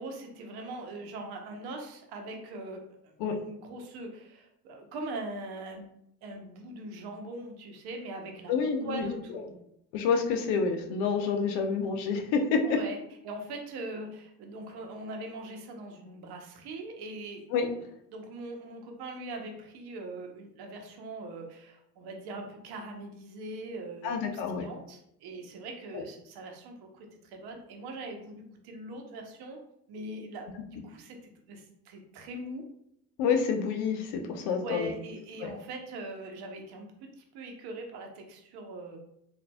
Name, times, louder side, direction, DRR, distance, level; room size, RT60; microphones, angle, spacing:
voice 1, 0.0-3.1 3.4-5.9 6.2-8.5 8.8-9.5 12.6-13.0 13.2-17.5 18.1-29.6 29.9-31.2 31.5-32.6 34.6-36.9 37.2-39.0, right 2 dB, 55° right, 3 dB, 0.9 m, -41 dB
voice 2, 8.5-9.4 9.9-12.8 17.5-17.7 24.0-24.6 25.9-26.0 33.2-34.9 35.4-35.5, left 5 dB, 65° left, 5 dB, 0.7 m, -28 dB
3.9 x 2.6 x 2.3 m, 0.75 s
hypercardioid pair, 70°, 45 cm